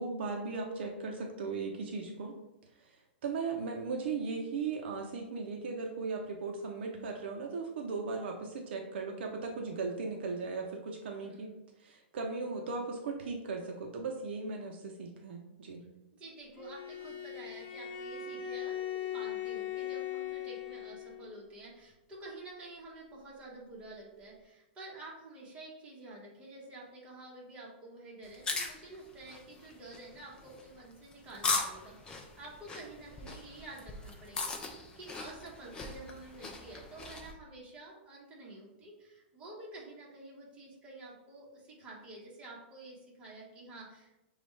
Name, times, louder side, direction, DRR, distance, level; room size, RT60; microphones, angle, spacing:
voice 1, 0.0-2.3 2.8-3.0 3.2-11.5 11.8-15.8, right 4 dB, 65° right, 1 dB, 0.6 m, -37 dB
voice 2, 11.2-11.6 16.1-44.2, right 2 dB, 15° right, -5 dB, 1.3 m, -49 dB
Bowed string instrument, 16.5-21.3, left 10 dB, 40° left, 1.0 m, -39 dB
sound 1, 28.2-37.3, left 3 dB, 15° left, 0.4 m, -39 dB
6.0 x 2.4 x 3.2 m, 0.94 s
hypercardioid pair, 150°, 6 cm